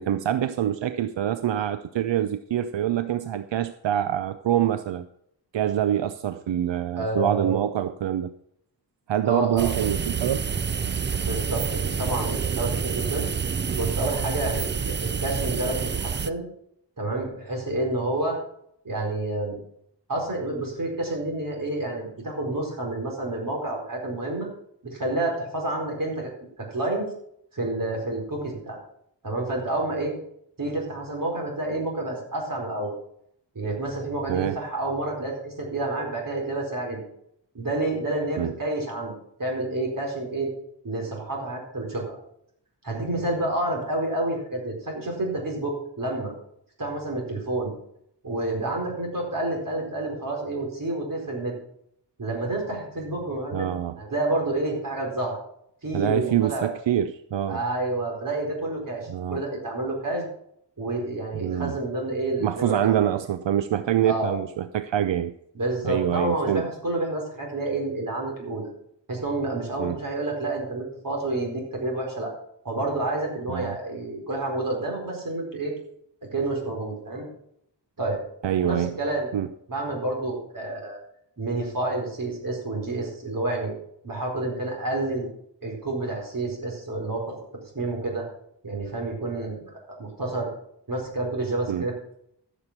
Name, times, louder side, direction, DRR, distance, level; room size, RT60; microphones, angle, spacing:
voice 1, 0.0-5.0 5.5-8.3 9.1-10.5 34.3-34.6 38.4-38.5 53.5-54.0 55.9-57.6 59.1-59.4 61.3-61.8 62.4-65.3 65.8-66.6 69.8-70.0 73.5-73.8 78.4-78.9 79.3-79.5 91.7-91.8, right 11 dB, 85° right, 12 dB, 0.6 m, -25 dB
voice 2, 7.0-7.6 9.2-9.9 11.2-13.3 13.7-16.4 17.0-18.4 18.8-19.6 20.1-24.5 24.8-26.3 26.6-27.0 27.5-28.8 29.2-30.1 30.6-32.9 33.5-37.0 37.5-39.1 39.4-40.5 40.8-42.2 42.8-46.3 46.8-47.7 48.2-51.5 52.2-53.7 54.0-55.4 55.8-56.7 57.5-60.3 60.8-62.9 64.0-64.3 65.5-68.7 69.1-72.3 72.6-75.7 76.3-77.3 78.0-78.2 78.6-79.3 79.7-81.0 81.4-83.7 84.0-85.3 85.6-87.3 87.7-88.2 88.6-90.5 90.9-91.9, right 2 dB, 50° right, 0 dB, 4.5 m, -29 dB
sound 1, 9.6-16.3, right 6 dB, 25° right, 0.4 m, -28 dB
14.0 x 7.1 x 5.9 m, 0.71 s
wide cardioid pair, 115°, 43 cm